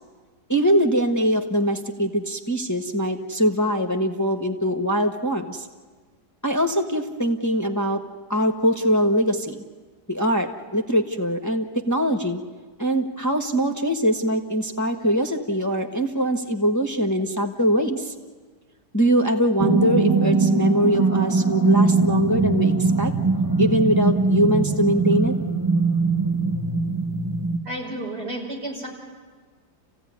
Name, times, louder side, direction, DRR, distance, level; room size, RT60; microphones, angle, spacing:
voice 1, 0.5-5.7 6.4-8.0 8.3-9.6 10.1-12.4 12.8-18.1 18.9-23.1 23.6-25.4, equal, 10° left, 3 dB, 1.1 m, -22 dB
sound 1, 19.6-27.6, right 3 dB, 15° right, 0.9 m, -21 dB
voice 2, 27.6-28.9, right 1 dB, 90° right, -2 dB, 6.7 m, -31 dB
29.5 x 16.0 x 9.5 m, 1.4 s
omnidirectional pair, 1.7 m